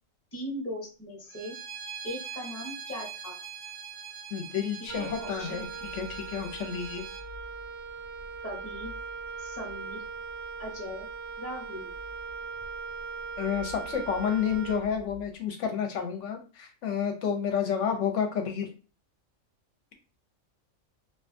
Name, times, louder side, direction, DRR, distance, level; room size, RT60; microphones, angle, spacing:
voice 1, 0.3-1.6 2.0-3.4 5.0-5.6 8.4-8.9 9.4-10.0 10.6-11.1 11.4-11.9, left 1 dB, 15° left, -2 dB, 0.7 m, -39 dB
Bowed string instrument, 1.3-7.2, right 7 dB, 80° right, 1.1 m, -42 dB
voice 2, 4.3-5.7 5.9-7.0 13.4-18.7, left 7 dB, 65° left, 4 dB, 0.8 m, -30 dB
Wind instrument woodwind instrument, 4.9-15.3, right 4 dB, 60° right, 0.7 m, -40 dB
2.4 x 2.3 x 2.5 m, 0.35 s
omnidirectional pair, 1.5 m